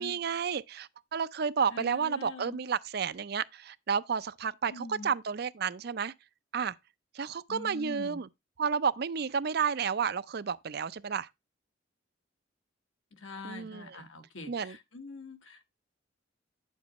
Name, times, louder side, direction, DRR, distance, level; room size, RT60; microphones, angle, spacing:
voice 1, 0.0-6.1 6.5-6.7 7.1-8.3 8.6-11.3 13.4-14.0 14.5-14.8, right 6 dB, 55° right, 0.5 m, -31 dB
voice 2, 1.7-2.6 4.7-5.1 7.5-8.2 13.2-15.6, left 2 dB, 90° left, 1.6 m, -44 dB
9.3 x 7.3 x 2.9 m
head